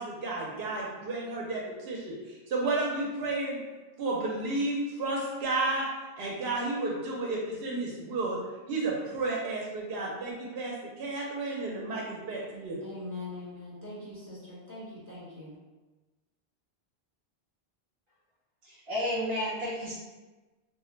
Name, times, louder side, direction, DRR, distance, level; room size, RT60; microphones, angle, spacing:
voice 1, 0.0-3.6 4.0-5.9 6.2-8.4 8.7-12.8, right 2 dB, 70° right, -3 dB, 0.8 m, -32 dB
voice 2, 12.8-15.5, left 2 dB, 20° right, -8 dB, 1.0 m, -42 dB
voice 3, 18.6-19.9, equal, 40° right, -7 dB, 0.4 m, -31 dB
2.4 x 2.1 x 3.7 m, 1.2 s
omnidirectional pair, 1.1 m